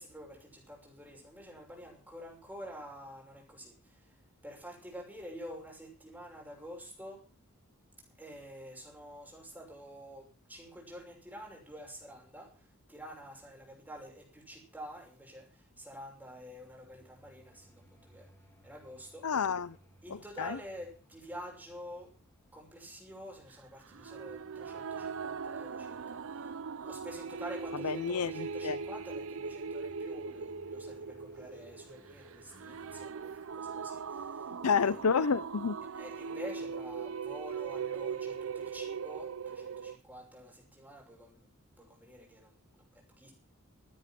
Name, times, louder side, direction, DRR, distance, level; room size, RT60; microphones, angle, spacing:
voice 1, 0.0-4.2 4.4-7.2 8.2-18.3 18.6-19.2 20.0-22.1 22.5-26.5 26.8-35.1 35.9-41.4 41.8-43.3, equal, 10° right, 6.3 m, -48 dB
sound 1, 16.6-33.0, equal, 10° left, 3.0 m, -63 dB
voice 2, 19.2-19.8 20.1-20.6 27.8-28.8 34.6-35.8, left 6 dB, 80° left, 0.6 m, -30 dB
sound 2, 23.9-40.0, right 5 dB, 65° right, 0.6 m, -40 dB
15.0 x 9.5 x 7.5 m
head